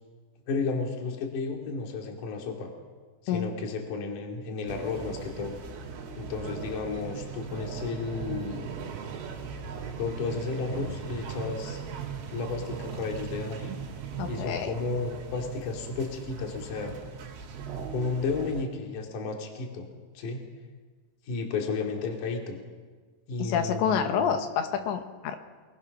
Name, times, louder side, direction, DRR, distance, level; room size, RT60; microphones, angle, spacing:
voice 1, 0.5-2.7 3.2-5.6 6.2-8.7 10.0-11.8 12.3-13.8 14.3-16.9 17.9-19.9 20.2-20.4 21.3-22.6 23.3-24.4, left 4 dB, 45° left, 1 dB, 3.6 m, -33 dB
sound 1, 4.7-18.6, right 6 dB, 75° right, 4.9 m, -39 dB
voice 2, 14.2-14.8 23.4-25.4, left 7 dB, 70° left, 7 dB, 3.2 m, -28 dB
26.0 x 20.5 x 6.1 m, 1.4 s
omnidirectional pair, 5.9 m